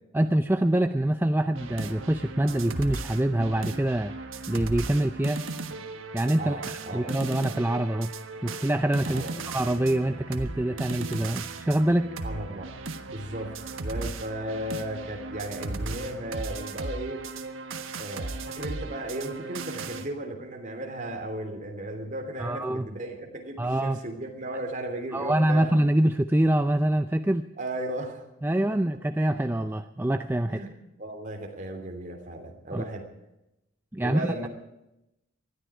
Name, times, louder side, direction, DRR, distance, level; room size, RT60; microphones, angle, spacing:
voice 1, 0.1-4.1 4.5-5.4 6.1-6.6 6.9-8.1 8.4-12.1 22.4-22.9 23.6-24.0 25.1-27.5 28.4-30.6 32.7-32.8 33.9-34.3, right 1 dB, 10° right, 8 dB, 0.5 m, -25 dB
sound 1, 1.5-20.1, right 3 dB, 75° right, 1.4 m, -37 dB
voice 2, 6.4-7.1 9.1-9.4 12.2-12.7 13.1-17.2 17.9-25.7 27.6-28.3 28.7-28.8 30.4-30.7 31.0-33.1 34.0-34.5, right 1 dB, 40° right, 3 dB, 3.2 m, -35 dB
20.5 x 13.5 x 5.0 m, 0.89 s
head